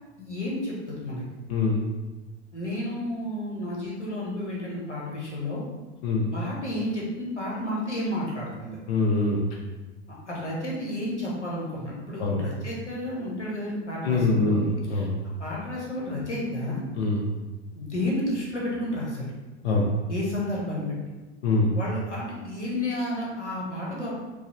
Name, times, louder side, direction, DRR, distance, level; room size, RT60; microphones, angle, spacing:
voice 1, 0.2-1.2 2.5-5.6 6.3-8.8 10.1-14.6 14.9-15.1 15.4-16.8 17.7-19.3 20.1-20.9 21.7-24.1, left 1 dB, 90° left, -4 dB, 0.9 m, -31 dB
voice 2, 1.5-1.8 6.0-6.3 8.9-9.4 12.2-12.4 14.0-15.1 17.0-17.2 19.6-19.9 21.4-21.7, left 3 dB, 60° left, -1 dB, 0.7 m, -23 dB
4.7 x 2.0 x 2.9 m, 1.2 s
figure-of-eight pair, 85°, 34 cm